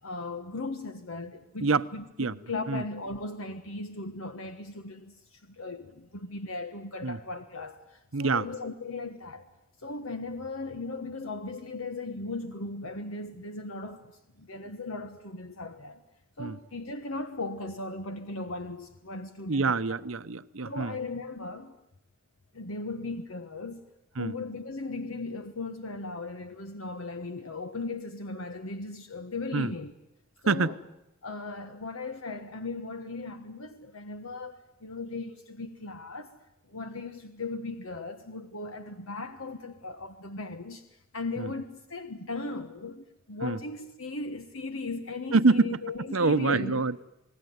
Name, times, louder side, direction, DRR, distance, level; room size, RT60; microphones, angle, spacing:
voice 1, 0.0-9.5 9.8-14.1 14.4-16.0 16.4-19.8 20.6-21.8 22.5-23.8 24.2-29.9 30.4-30.8 31.2-36.3 36.7-46.8, left 3 dB, 80° left, 1.4 m, -37 dB
voice 2, 8.1-8.5 16.4-16.6 19.5-21.0 24.2-24.3 29.5-29.7 30.5-30.7 41.4-41.5 43.4-43.6 45.3-45.7 46.1-47.0, right 3 dB, 70° right, 0.9 m, -26 dB
28.5 x 19.5 x 9.5 m
head